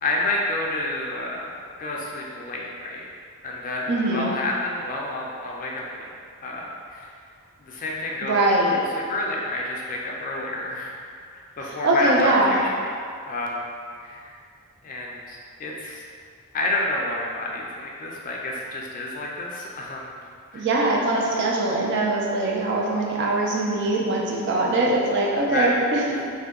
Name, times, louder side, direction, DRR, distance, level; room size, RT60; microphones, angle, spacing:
voice 1, 0.0-1.5 1.8-3.1 3.4-6.1 6.4-7.1 7.6-8.3 8.7-8.8 9.1-10.9 11.3-12.9 13.3-13.7 14.0-14.3 14.8-16.0 16.5-20.2 20.5-20.7 25.5-25.8 26.1-26.2, left 2 dB, 35° left, -2 dB, 0.3 m, -29 dB
voice 2, 3.9-4.3 8.2-8.8 11.6-12.6 20.5-26.0, right 2 dB, 50° right, -3 dB, 0.4 m, -22 dB
2.7 x 2.2 x 3.5 m, 2.2 s
head